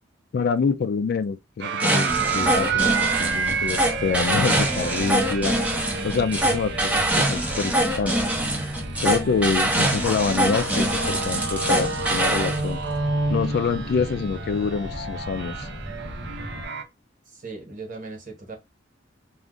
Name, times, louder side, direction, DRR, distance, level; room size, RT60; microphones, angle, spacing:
voice 1, 0.3-5.6 6.0-8.3 9.0-12.8 13.3-15.7, left 5 dB, 55° left, 0.3 m, -26 dB
sound 1, 1.6-16.8, right 4 dB, 60° right, 0.5 m, -30 dB
sound 2, 1.8-12.6, right 1 dB, 10° right, 0.6 m, -24 dB
sound 3, 2.1-16.7, equal, 25° left, 1.0 m, -36 dB
voice 2, 17.3-18.6, right 3 dB, 45° right, 1.0 m, -38 dB
2.5 x 2.4 x 3.6 m
head